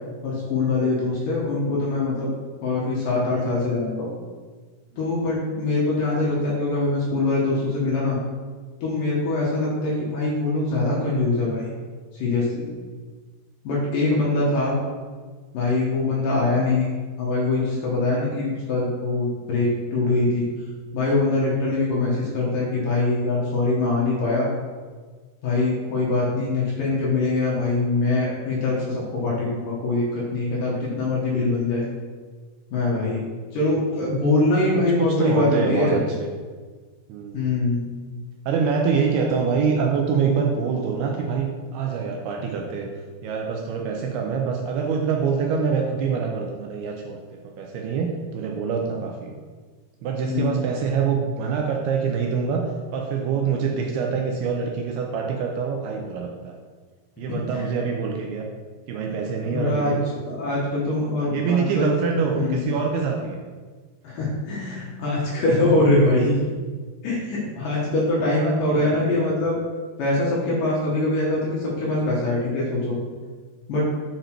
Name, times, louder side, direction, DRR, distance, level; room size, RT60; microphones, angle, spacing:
voice 1, 0.2-2.3 2.6-4.1 5.0-8.2 8.8-11.6 12.1-12.7 13.6-14.8 15.5-16.9 17.2-20.5 20.9-24.5 25.4-31.8 32.7-33.2 33.5-36.0 37.3-37.8 50.2-50.7 57.3-57.7 59.5-61.9 62.3-62.7 64.0-66.4 67.0-69.6 70.0-73.0 73.7-73.8, left 2 dB, 65° left, -5 dB, 2.3 m, -23 dB
voice 2, 34.7-36.3 37.1-37.5 38.5-42.9 43.2-49.4 50.0-56.6 57.2-58.5 58.9-60.1 60.9-61.0 61.3-63.4 68.3-69.3, right 5 dB, 80° right, 1 dB, 2.4 m, -25 dB
7.7 x 4.9 x 4.5 m, 1.5 s
omnidirectional pair, 5.0 m